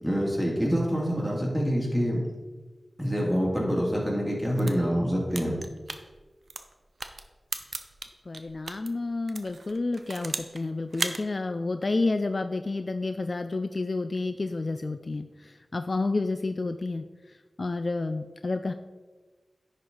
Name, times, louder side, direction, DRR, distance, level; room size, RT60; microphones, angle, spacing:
voice 1, 0.0-2.2 3.0-5.5, equal, 5° left, -4 dB, 2.4 m, -26 dB
sound 1, 4.4-8.9 9.3-10.6 10.9-11.2, right 3 dB, 70° right, 0.6 m, -36 dB
voice 2, 8.3-17.0 17.6-18.7, left 3 dB, 55° left, 9 dB, 0.3 m, -30 dB
10.5 x 4.3 x 3.9 m, 1.3 s
wide cardioid pair, 60°, 0 cm